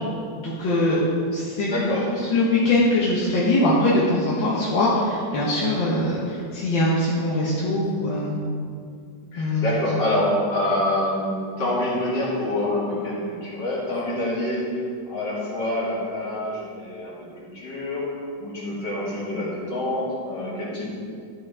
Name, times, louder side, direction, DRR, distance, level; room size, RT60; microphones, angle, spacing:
voice 1, 0.4-1.0 1.3-1.8 2.3-8.4 9.4-9.7, left 1 dB, 85° left, -7 dB, 2.1 m, -22 dB
voice 2, 1.6-2.1 9.3-14.8 15.1-18.1 18.4-20.9, left 1 dB, 70° left, -5 dB, 2.9 m, -26 dB
12.5 x 6.3 x 4.9 m, 2.3 s
omnidirectional pair, 2.0 m